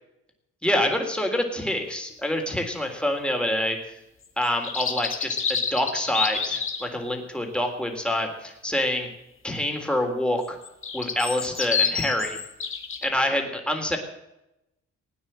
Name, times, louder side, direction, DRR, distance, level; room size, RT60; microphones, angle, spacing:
voice 1, 0.6-3.8 4.4-9.1 9.4-10.6 10.9-12.4 13.0-14.0, left 1 dB, 5° left, 3 dB, 3.6 m, -26 dB
sound 1, 4.4-6.9 10.4-13.1, left 6 dB, 45° left, 2.2 m, -28 dB
18.0 x 9.5 x 7.6 m, 0.89 s
cardioid pair, 90°, 30 cm